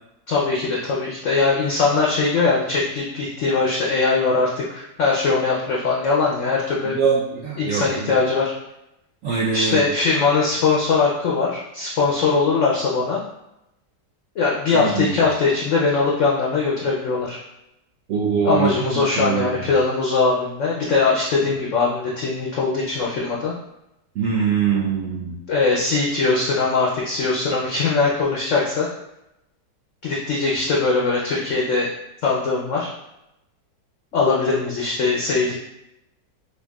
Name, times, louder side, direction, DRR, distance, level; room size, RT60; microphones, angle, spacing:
voice 1, 0.3-6.9 7.6-8.5 9.5-13.2 14.4-17.4 18.4-23.5 25.5-28.9 30.0-31.9 32.2-32.9 34.1-35.5, left 4 dB, 75° left, -4 dB, 0.7 m, -21 dB
voice 2, 6.9-8.1 9.2-9.8 14.7-15.2 18.1-18.7 19.2-19.7 24.1-25.3, right 6 dB, 70° right, -5 dB, 0.7 m, -23 dB
4.5 x 2.6 x 2.3 m, 0.87 s
omnidirectional pair, 1.9 m